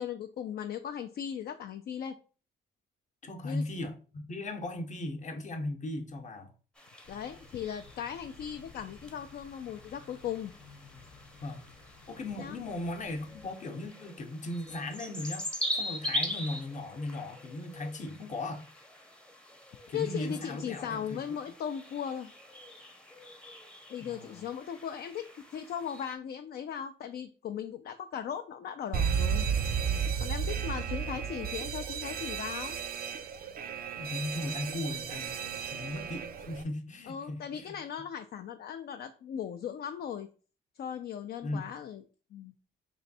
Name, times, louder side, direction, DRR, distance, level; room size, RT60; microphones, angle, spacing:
voice 1, 0.0-2.2 3.4-3.6 7.1-10.5 12.4-12.6 19.9-22.3 23.9-29.5 30.2-32.8 37.1-40.3 40.8-42.0 42.3-42.5, left 8 dB, 55° left, 0.4 m, -38 dB
voice 2, 3.2-6.5 11.4-11.6 12.1-18.7 19.9-21.2 24.0-24.5 30.4-30.7 34.0-37.7 41.4-41.6, left 2 dB, 40° left, 0.8 m, -37 dB
sound 1, 6.8-26.1, equal, 5° left, 0.7 m, -42 dB
Thunder / Bicycle, 7.0-13.5, left 4 dB, 75° left, 0.8 m, -55 dB
Alarm, 28.9-36.6, right 7 dB, 50° right, 0.4 m, -33 dB
3.1 x 2.6 x 4.1 m
cardioid pair, 90°, 20 cm